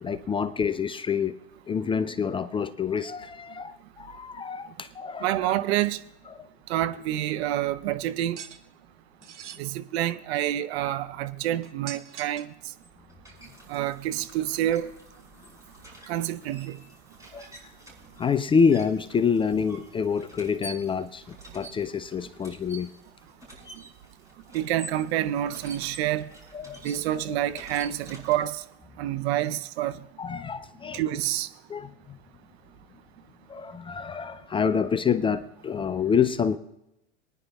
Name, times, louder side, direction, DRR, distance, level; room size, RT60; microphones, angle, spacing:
voice 1, 0.0-1.4 1.7-5.5 6.4-6.5 17.3-17.4 18.2-22.9 26.5-26.8 30.2-31.0 31.7-32.2 33.5-36.6, left 6 dB, 15° left, 0.4 m, -27 dB
voice 2, 5.2-6.0 6.7-8.4 9.6-12.5 13.7-14.9 16.1-16.8 24.5-26.3 26.8-28.6 29.0-29.9 30.9-31.5, right 13 dB, 65° right, 0.7 m, -27 dB
sound 1, 8.4-8.6 9.2-9.6 11.6-12.6, right 9 dB, 85° right, 0.9 m, -42 dB
sound 2, 12.6-28.8, right 1 dB, 10° right, 5.4 m, -48 dB
23.5 x 10.0 x 2.3 m
hypercardioid pair, 95°, 34 cm